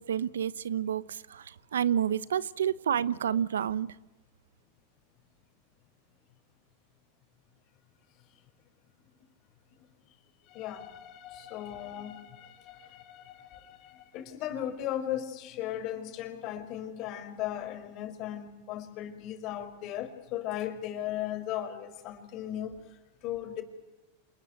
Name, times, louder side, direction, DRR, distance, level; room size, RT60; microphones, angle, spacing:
voice 1, 0.0-3.9, right 9 dB, 85° right, 0.9 m, -29 dB
voice 2, 10.5-22.8 23.2-23.6, left 11 dB, 50° left, 5.3 m, -37 dB
27.0 x 20.5 x 9.1 m
hypercardioid pair, 105°, 0 cm